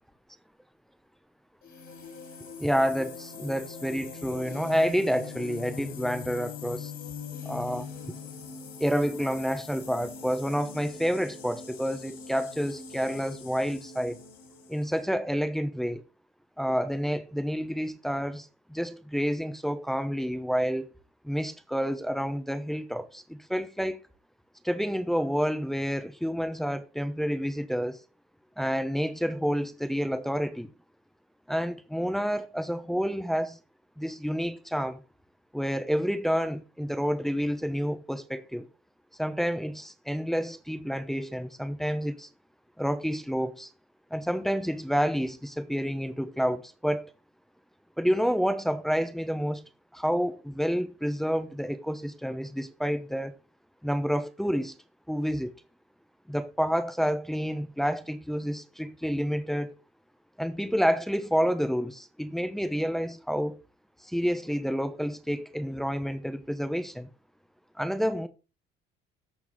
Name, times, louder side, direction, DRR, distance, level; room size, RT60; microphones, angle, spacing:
sound 1, 1.6-15.0, left 6 dB, 50° left, 3.1 m, -42 dB
voice 1, 2.6-6.9 7.4-7.9 8.8-14.2 14.7-16.0 16.6-20.9 21.2-24.0 24.6-28.0 28.6-30.7 31.5-33.6 34.0-35.0 35.5-38.7 39.2-42.3 42.8-43.7 44.1-47.1 48.0-49.6 49.9-53.4 53.8-54.8 55.1-55.5 56.3-59.7 60.4-63.6 64.1-67.1 67.8-68.3, equal, ahead, 0.9 m, -29 dB
13.5 x 4.6 x 3.5 m
cardioid pair, 120°, 19 cm